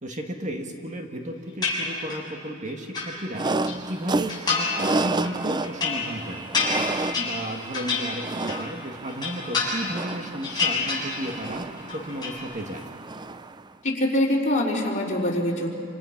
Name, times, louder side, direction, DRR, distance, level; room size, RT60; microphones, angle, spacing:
voice 1, 0.0-3.5 3.9-6.5 6.9-12.9, right 1 dB, 40° right, 3 dB, 1.9 m, -34 dB
sound 1, 1.6-2.3 2.7-3.8 4.3-4.9 5.2-8.7 9.1-10.1 10.4-11.5 11.8-12.4, left 4 dB, 20° left, 7.1 m, -28 dB
sound 2, 3.3-13.7, right 2 dB, 20° right, 0.5 m, -31 dB
voice 2, 13.8-15.7, left 1 dB, 40° left, -3 dB, 4.1 m, -24 dB
28.0 x 27.5 x 6.0 m, 2.5 s
head